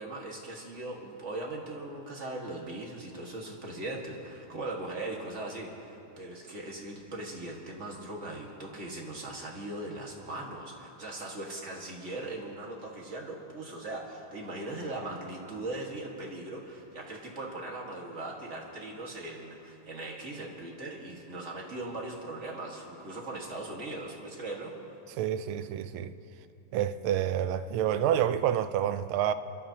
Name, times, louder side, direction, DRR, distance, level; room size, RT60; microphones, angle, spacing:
voice 1, 0.0-24.7, right 2 dB, 35° right, 1.8 m, -39 dB
voice 2, 25.2-26.1 26.7-29.3, right 10 dB, 80° right, 1.4 m, -28 dB
28.5 x 12.5 x 2.9 m
omnidirectional pair, 2.4 m